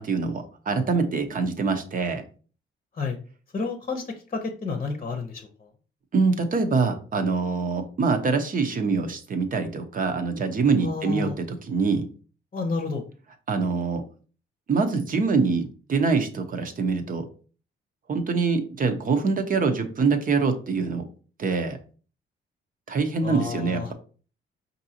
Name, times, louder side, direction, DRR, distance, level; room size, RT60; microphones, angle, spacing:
voice 1, 0.0-2.2 6.1-12.0 13.5-14.0 14.7-17.2 18.1-21.0 21.4-21.8 22.9-23.9, right 4 dB, 45° right, 7 dB, 0.8 m, -24 dB
voice 2, 3.5-4.0 4.3-5.5 10.8-11.4 12.5-13.0 23.2-23.9, left 4 dB, 35° left, 5 dB, 0.8 m, -30 dB
5.3 x 2.7 x 2.8 m, 0.39 s
cardioid pair, 90°, 20 cm